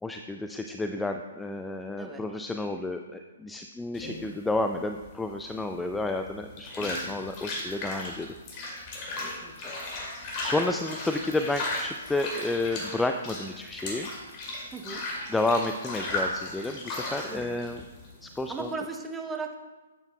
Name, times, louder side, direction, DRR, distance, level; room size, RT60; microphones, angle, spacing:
voice 1, 0.0-8.3 8.6-9.3 10.4-14.1 15.3-17.8 18.2-18.7, left 2 dB, 5° left, 6 dB, 0.3 m, -31 dB
sound 1, 3.9-18.7, left 2 dB, 30° left, 2.3 m, -36 dB
voice 2, 9.4-9.9 14.7-15.0 17.3-17.6 18.5-19.6, right 4 dB, 10° right, 4 dB, 0.8 m, -37 dB
11.0 x 8.1 x 2.2 m, 1.3 s
figure-of-eight pair, 125°, 0 cm